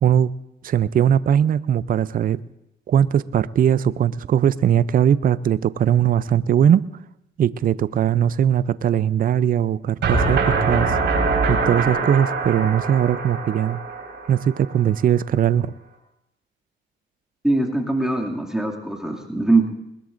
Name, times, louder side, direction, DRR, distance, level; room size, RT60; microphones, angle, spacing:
voice 1, 0.6-2.4 2.9-6.8 7.4-11.0 11.5-13.8 14.3-15.7, right 9 dB, 45° right, 16 dB, 0.5 m, -19 dB
sound 1, 10.0-14.9, right 4 dB, 65° right, 4.7 m, -23 dB
voice 2, 17.4-19.7, right 2 dB, 5° right, 0 dB, 2.3 m, -22 dB
20.5 x 20.5 x 2.6 m, 0.86 s
cardioid pair, 90°, 20 cm